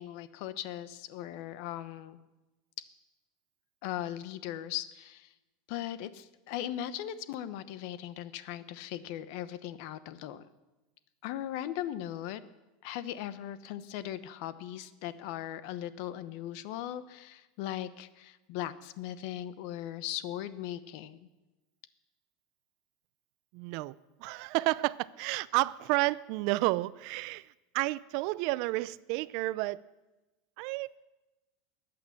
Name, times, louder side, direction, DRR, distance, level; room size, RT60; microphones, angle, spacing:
voice 1, 0.0-2.2 3.8-5.3 5.7-10.4 11.2-12.4 12.8-21.3, left 12 dB, 50° left, 14 dB, 0.9 m, -38 dB
voice 2, 23.5-29.8 30.6-31.0, right 20 dB, 50° right, 19 dB, 0.5 m, -31 dB
22.0 x 8.8 x 7.3 m, 1.1 s
supercardioid pair, 165°, 0 cm